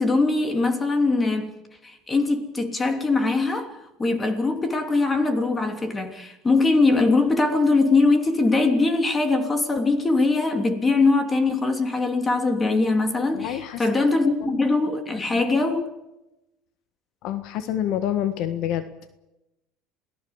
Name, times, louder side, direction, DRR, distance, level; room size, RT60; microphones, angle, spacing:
voice 1, 0.0-1.5 2.1-3.7 4.0-15.9, left 3 dB, 15° left, 3.1 m, -21 dB
voice 2, 13.3-13.9 14.2-14.7 15.3-15.4 17.2-19.1, left 10 dB, 60° left, 1.5 m, -28 dB
28.0 x 18.0 x 7.3 m
cardioid pair, 135°, 0 cm